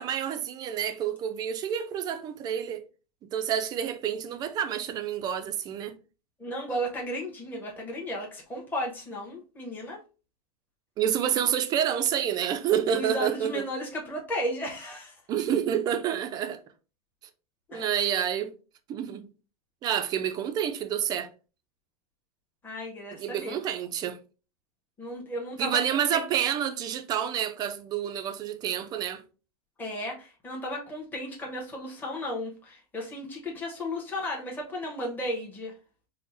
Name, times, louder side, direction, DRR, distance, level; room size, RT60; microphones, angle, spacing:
voice 1, 0.0-2.8 3.3-5.9 11.0-13.6 15.3-16.6 17.7-18.5 18.9-19.3 19.8-21.3 23.1-24.2 25.6-29.2, right 9 dB, 20° right, 0.3 m, -28 dB
voice 2, 6.4-10.0 12.9-15.2 17.7-17.9 22.6-23.6 25.0-26.3 29.8-35.7, equal, 10° left, 0.8 m, -34 dB
4.3 x 2.1 x 3.2 m
supercardioid pair, 145°, 20 cm